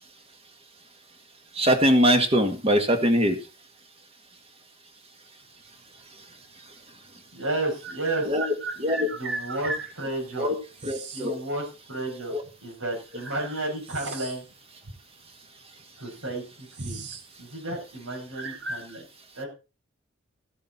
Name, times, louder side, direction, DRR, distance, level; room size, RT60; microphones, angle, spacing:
voice 1, 1.6-3.4 8.3-8.4 8.8-9.1 10.4-10.6 10.8-11.4 12.3-12.4, equal, 30° right, 6 dB, 1.8 m, -22 dB
sound 1, 6.6-6.7 7.8-9.9 10.8-11.3 12.4-12.5 13.1-14.5 14.8-15.0 15.8-15.9 16.2-17.3 17.5-17.8 18.3-18.9, right 3 dB, 55° right, 1.6 m, -36 dB
voice 2, 7.3-8.4 9.1-10.5 11.1-12.4 12.6-14.4 16.0-17.0 17.4-19.0 19.3-19.5, right 2 dB, 85° right, 0 dB, 6.6 m, -32 dB
14.5 x 8.4 x 4.2 m, 0.31 s
head